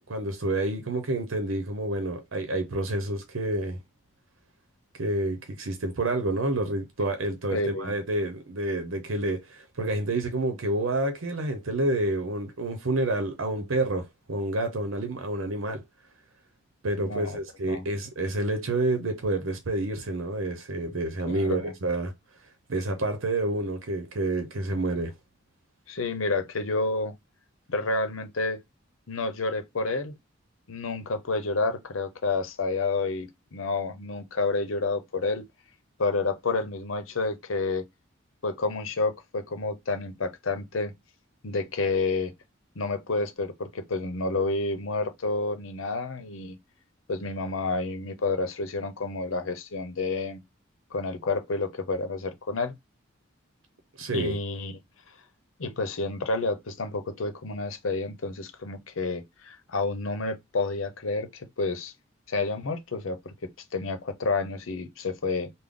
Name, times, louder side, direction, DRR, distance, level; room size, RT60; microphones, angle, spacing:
voice 1, 0.1-3.8 5.0-15.8 16.8-22.1 22.7-25.1 54.0-54.4, right 2 dB, 90° right, 0.7 m, -28 dB
voice 2, 7.5-8.0 17.0-17.4 17.7-17.9 21.3-21.7 25.9-27.1 27.7-28.6 29.1-30.1 30.7-35.4 36.0-37.8 38.4-40.9 41.4-42.3 42.8-46.6 47.1-50.4 50.9-52.7 54.1-54.8 55.6-61.9 62.3-63.3 63.7-65.5, left 3 dB, 85° left, 0.8 m, -29 dB
3.5 x 2.1 x 3.7 m
head